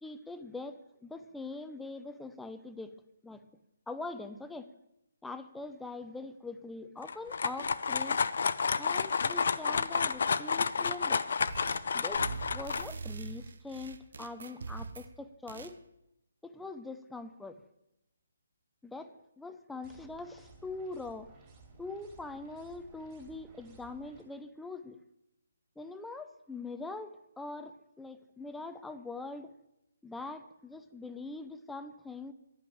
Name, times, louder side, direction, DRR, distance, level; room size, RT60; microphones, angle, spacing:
voice 1, 0.0-2.9 3.2-3.4 3.9-4.7 5.2-8.2 8.8-11.2 11.9-12.3 12.5-15.8 16.4-17.6 18.8-21.3 21.8-25.0 25.8-29.5 30.0-32.3, left 3 dB, 5° left, 9 dB, 0.5 m, -43 dB
sound 1, 7.0-12.8, left 5 dB, 60° left, 0.5 m, -30 dB
sound 2, 11.5-11.9 12.2-15.1 15.5-15.8, right 4 dB, 65° right, 0.8 m, -42 dB
sound 3, 19.8-24.2, right 4 dB, 20° right, 2.7 m, -57 dB
10.5 x 5.8 x 7.9 m, 0.87 s
figure-of-eight pair, 150°, 0 cm